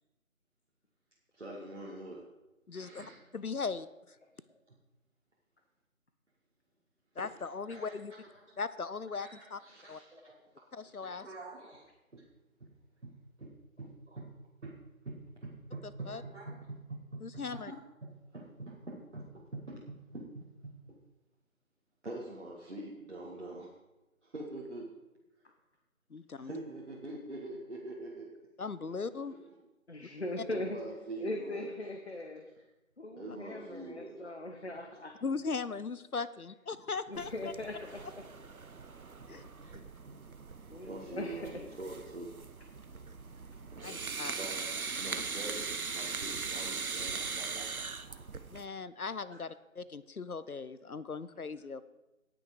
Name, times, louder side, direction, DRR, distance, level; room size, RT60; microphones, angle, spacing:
voice 1, 1.3-2.3 2.7-3.4 7.3-8.6 9.1-12.3 12.6-12.7 13.0-14.3 14.6-17.7 18.0-21.0 22.0-23.8 24.2-25.0 26.4-28.4 28.9-29.0 29.3-29.6 29.9-31.7 32.1-32.5 33.2-34.6 38.8-38.9 39.2-39.8 40.0-40.2 40.8-42.4 42.7-42.8 43.2-43.3 43.7-48.2 49.3-49.4, right 2 dB, 55° right, -3 dB, 1.9 m, -46 dB
voice 2, 2.7-3.0 3.3-3.9 7.2-8.1 8.6-9.6 9.9-10.0 10.7-11.3 15.8-16.2 17.2-17.7 26.1-26.5 28.6-29.3 30.0-30.1 35.2-37.3 39.3-39.4 43.8-44.3 48.5-51.9, left 4 dB, 85° left, 16 dB, 0.8 m, -38 dB
voice 3, 29.9-30.8 31.2-32.5 33.0-35.1 37.1-38.2 39.7-39.8 40.7-41.4, left 2 dB, 50° left, 4 dB, 1.2 m, -40 dB
sound 1, 37.1-48.6, right 4 dB, 75° right, 0.8 m, -40 dB
17.5 x 6.2 x 5.0 m, 1.0 s
figure-of-eight pair, 165°, 43 cm